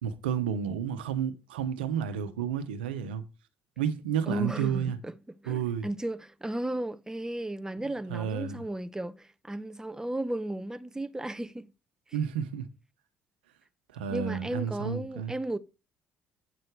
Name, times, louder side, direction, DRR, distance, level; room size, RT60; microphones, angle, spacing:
voice 1, 0.0-3.2 3.8-5.0 5.5-5.9 8.1-8.6 12.1-12.7 13.9-15.3, right 8 dB, 90° right, 1.0 m, -31 dB
voice 2, 4.3-11.7 12.1-12.2 14.1-15.6, right 1 dB, 10° right, 0.9 m, -35 dB
9.7 x 6.6 x 4.7 m
hypercardioid pair, 55°, 5 cm